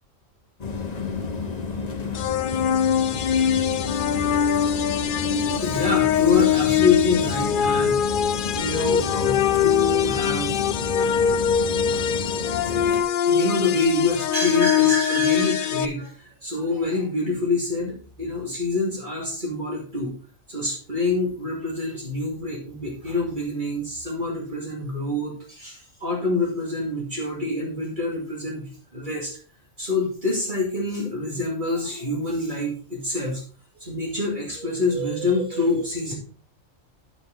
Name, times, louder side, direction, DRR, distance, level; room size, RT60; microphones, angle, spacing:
sound 1, 0.6-13.0, left 5 dB, 35° left, 1.0 m, -31 dB
sound 2, 2.1-15.9, left 9 dB, 65° left, 0.5 m, -22 dB
voice 1, 5.3-8.0 8.3-10.8 11.9-12.1 12.9-13.0 13.3-20.1 20.5-29.4 29.8-33.4 33.8-36.1, left 2 dB, 35° right, -2 dB, 2.4 m, -26 dB
8.7 x 7.7 x 3.8 m, 0.41 s
omnidirectional pair, 1.4 m